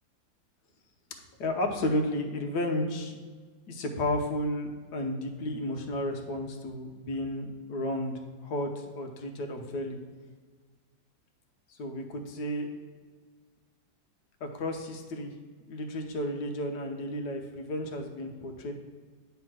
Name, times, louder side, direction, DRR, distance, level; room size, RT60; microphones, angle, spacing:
voice 1, 1.4-3.2 3.7-8.1 8.4-10.0 11.7-12.7 14.4-15.3 15.7-18.7, left 1 dB, 65° left, 3 dB, 1.3 m, -32 dB
9.4 x 3.4 x 6.0 m, 1.5 s
omnidirectional pair, 2.1 m